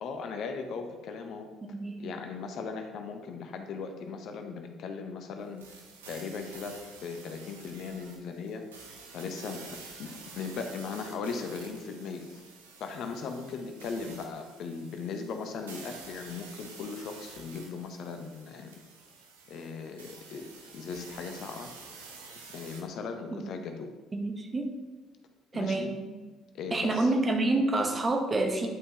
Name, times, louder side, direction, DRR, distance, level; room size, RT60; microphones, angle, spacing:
voice 1, 0.0-1.5 2.0-5.6 6.1-8.7 9.1-9.6 10.0-12.4 12.8-18.8 19.5-21.7 22.5-23.9 25.5-26.0 26.5-27.1, left 5 dB, 55° left, 5 dB, 0.7 m, -38 dB
voice 2, 1.6-2.1 23.3-23.5 24.1-24.7 25.5-26.1 26.7-28.7, right 2 dB, 30° right, 4 dB, 1.0 m, -28 dB
sound 1, 5.6-22.8, right 4 dB, 80° right, 0.8 m, -49 dB
9.6 x 5.3 x 2.9 m, 1.3 s
figure-of-eight pair, 50°, 0 cm